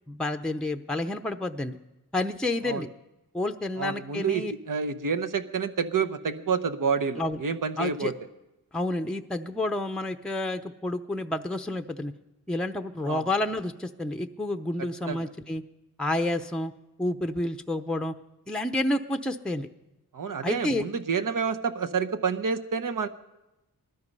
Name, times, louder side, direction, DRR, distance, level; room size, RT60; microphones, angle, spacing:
voice 1, 0.1-1.8 2.1-2.9 3.3-4.5 7.2-7.4 7.8-8.1 8.7-12.1 12.5-15.6 16.0-16.7 17.0-18.1 18.5-19.7 20.4-20.8, left 1 dB, ahead, 6 dB, 0.7 m, -29 dB
voice 2, 3.8-8.1 13.1-13.2 15.1-15.2 20.1-23.1, right 6 dB, 60° right, 7 dB, 1.0 m, -28 dB
19.5 x 13.0 x 5.4 m, 0.99 s
cardioid pair, 60°, 36 cm